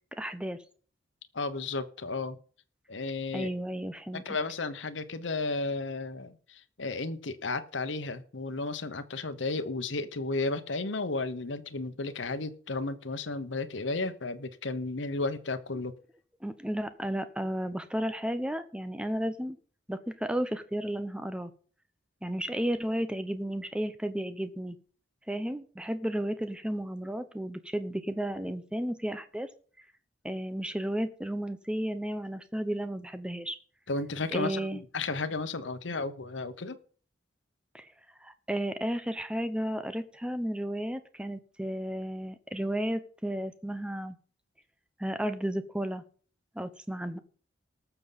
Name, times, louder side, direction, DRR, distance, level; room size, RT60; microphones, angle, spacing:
voice 1, 0.2-0.6 3.3-4.2 16.4-19.6 19.9-21.5 22.2-24.8 25.3-29.5 30.2-33.6 34.3-34.8 37.7-37.9 38.2-44.2 45.0-46.0 46.5-47.2, right 1 dB, 5° right, 11 dB, 0.7 m, -33 dB
voice 2, 1.3-2.4 2.9-3.5 4.2-15.9 33.9-36.8, left 3 dB, 85° left, 10 dB, 1.0 m, -33 dB
19.5 x 6.9 x 4.0 m, 0.43 s
head